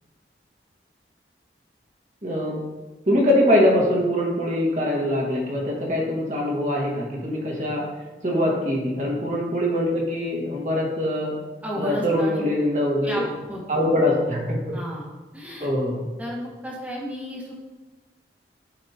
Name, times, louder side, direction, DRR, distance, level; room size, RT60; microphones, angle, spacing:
voice 1, 2.2-2.6 3.1-7.8 8.2-11.3 11.8-13.3 13.7-14.8 15.6-16.0, left 1 dB, 40° right, -2 dB, 1.6 m, -23 dB
voice 2, 11.6-12.4 13.0-13.8 14.7-15.7 16.2-17.5, equal, 10° right, -4 dB, 1.5 m, -33 dB
11.0 x 5.0 x 2.9 m, 1.2 s
head